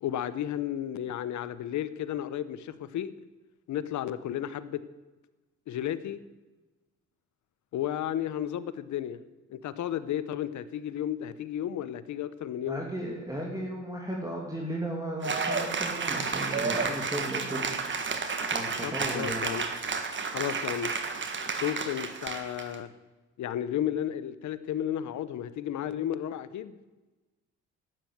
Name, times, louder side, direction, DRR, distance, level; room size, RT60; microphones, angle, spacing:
voice 1, 0.0-3.1 3.7-4.8 5.7-6.2 7.7-9.2 9.5-12.8 18.8-19.6 20.3-20.9 21.5-22.9 23.4-26.8, left 11 dB, 70° left, 14 dB, 0.9 m, -33 dB
voice 2, 12.6-17.7 18.5-19.5, right 1 dB, 10° right, -1 dB, 2.6 m, -35 dB
Cheering / Applause, 15.2-22.7, right 4 dB, 40° right, 1.6 m, -31 dB
12.0 x 9.2 x 8.0 m, 1.1 s
cardioid pair, 90°, 30 cm